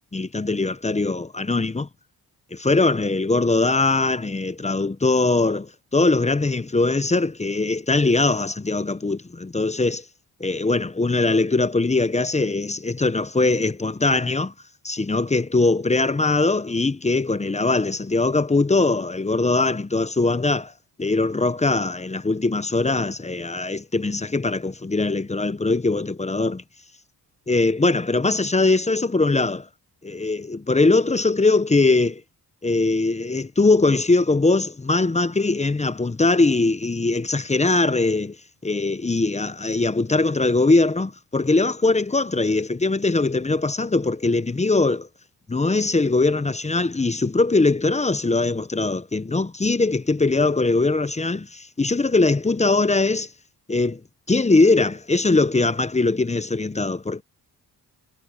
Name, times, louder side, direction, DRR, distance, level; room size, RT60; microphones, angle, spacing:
voice 1, 0.1-1.9 2.5-10.0 10.4-14.5 14.8-20.7 21.0-26.6 27.5-29.7 30.0-32.2 32.6-38.4 38.6-45.1 45.5-53.3 53.7-54.0 54.3-57.2, left 3 dB, 15° left, 0.9 m, -21 dB
cardioid pair, 85°, 40 cm